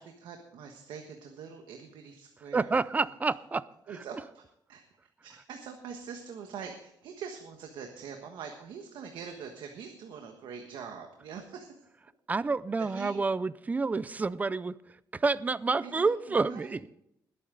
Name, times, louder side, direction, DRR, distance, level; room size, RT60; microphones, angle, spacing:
voice 1, 0.0-3.0 3.9-4.4 4.7-4.8 5.2-11.8 12.8-13.2 15.8-16.7, right 6 dB, 80° right, 4 dB, 1.4 m, -44 dB
voice 2, 2.5-4.0 12.3-17.0, right 4 dB, 20° right, 18 dB, 0.4 m, -29 dB
21.0 x 8.4 x 3.9 m, 0.76 s
cardioid pair, 130°, 8 cm